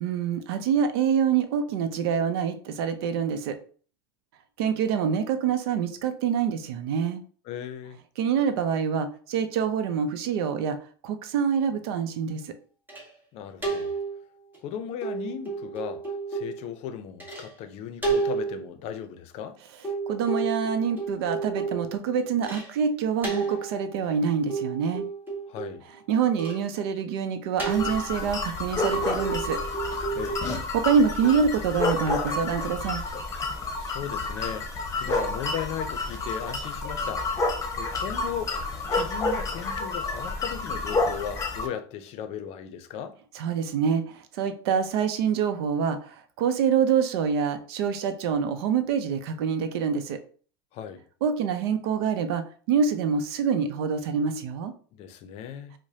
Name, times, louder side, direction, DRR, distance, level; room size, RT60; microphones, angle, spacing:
voice 1, 0.0-3.6 4.6-7.2 8.2-10.8 11.0-12.5 20.1-25.0 26.1-29.6 30.7-33.0 43.3-50.2 51.2-54.7, right 6 dB, 75° right, 0.6 m, -26 dB
voice 2, 7.5-8.0 13.3-13.9 14.6-16.0 16.3-19.6 25.5-25.8 30.2-30.4 33.8-34.7 35.0-38.6 38.9-43.2 50.7-51.0 54.9-55.7, left 9 dB, 50° left, 0.5 m, -36 dB
sound 1, 12.9-13.2 13.6-14.2 14.5-14.6 15.0-16.7 17.2-17.6 18.0-18.6 19.8-22.8 23.2-24.1 24.5-26.0 26.4-26.7 27.6-28.3 28.8-30.6 31.2-31.4, right 4 dB, 15° right, 1.4 m, -32 dB
sound 2, 27.7-41.7, left 3 dB, 25° left, 0.9 m, -30 dB
4.7 x 2.1 x 2.7 m
supercardioid pair, 105°, 13 cm